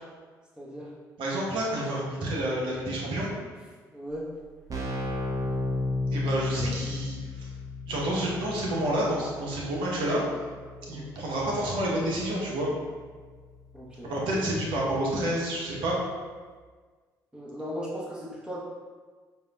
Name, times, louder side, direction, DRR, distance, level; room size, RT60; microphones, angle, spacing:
voice 1, 0.6-0.9 3.9-4.3 10.8-11.1 13.7-14.1 17.3-18.6, equal, 10° right, -6 dB, 1.3 m, -37 dB
voice 2, 1.2-3.3 6.1-7.5 7.8-10.2 10.9-12.7 14.0-16.0, right 1 dB, 65° right, -4 dB, 1.0 m, -29 dB
Keyboard (musical), 4.1-4.2 4.4-15.0, left 2 dB, 40° right, 0.8 m, -35 dB
4.8 x 2.7 x 2.4 m, 1.5 s
hypercardioid pair, 50°, 9 cm